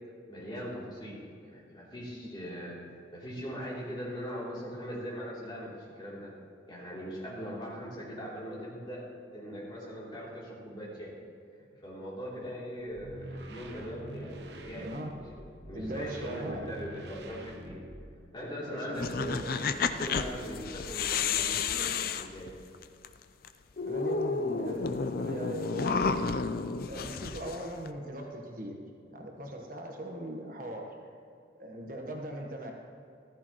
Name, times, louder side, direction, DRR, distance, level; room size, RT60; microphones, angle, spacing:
voice 1, 0.3-2.8 3.1-6.3 6.7-9.1 9.3-11.1 11.8-17.8 18.3-22.5, equal, 25° left, -6 dB, 3.2 m, -40 dB
sound 1, 12.9-18.3, right 1 dB, 65° right, 1.0 m, -46 dB
voice 2, 14.7-15.1 15.7-16.7 18.7-19.6 23.8-26.2 26.9-28.8 29.1-30.9 31.6-32.7, equal, 45° right, 1 dB, 1.3 m, -39 dB
sound 2, 18.9-23.1 23.4-23.5 23.8-27.9, left 5 dB, 50° left, 0.5 m, -31 dB
14.5 x 13.5 x 3.1 m, 2.5 s
head